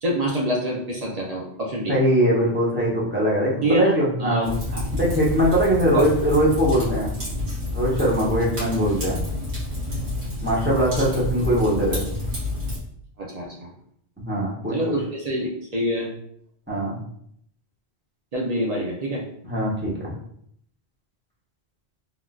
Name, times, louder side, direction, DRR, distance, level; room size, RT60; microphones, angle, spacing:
voice 1, 0.0-2.0 3.6-4.9 5.9-6.0 13.2-13.7 14.7-16.1 18.3-19.2, equal, 55° right, -2 dB, 0.5 m, -26 dB
voice 2, 1.9-4.6 4.9-7.2 7.7-9.2 10.4-12.1 14.2-14.9 16.7-17.0 19.4-20.1, equal, 10° right, -6 dB, 0.7 m, -21 dB
Fire, 4.4-12.8, left 1 dB, 80° right, 1.5 m, -29 dB
3.7 x 2.4 x 2.3 m, 0.70 s
omnidirectional pair, 1.1 m